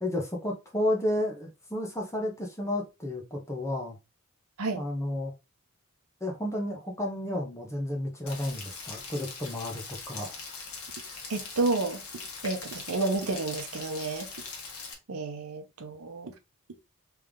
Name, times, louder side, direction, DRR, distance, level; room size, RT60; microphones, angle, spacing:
voice 1, 0.0-4.0 4.7-5.3 6.2-10.4, left 1 dB, 15° left, 1.0 m, -32 dB
Rain, 8.3-14.9, left 4 dB, 75° left, 1.4 m, -41 dB
voice 2, 11.3-12.0 12.4-14.3 15.1-16.3, right 3 dB, 85° right, 0.7 m, -30 dB
3.5 x 3.3 x 3.6 m
head